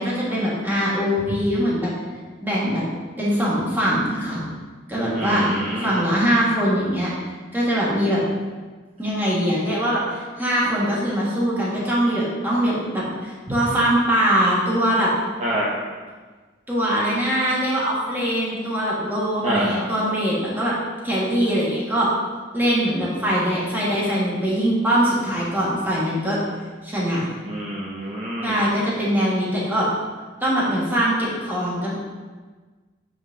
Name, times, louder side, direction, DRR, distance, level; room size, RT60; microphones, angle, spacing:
voice 1, 0.0-1.9 2.4-2.8 3.2-4.4 4.9-7.1 7.5-8.2 9.0-15.1 16.7-20.8 21.0-22.1 22.5-26.4 26.8-27.2 28.4-29.9 30.4-31.9, equal, 10° right, -7 dB, 1.7 m, -22 dB
voice 2, 5.1-6.0 15.4-15.7 19.4-19.8 27.5-28.5, right 1 dB, 35° right, -6 dB, 0.8 m, -26 dB
8.5 x 5.7 x 2.8 m, 1.4 s
head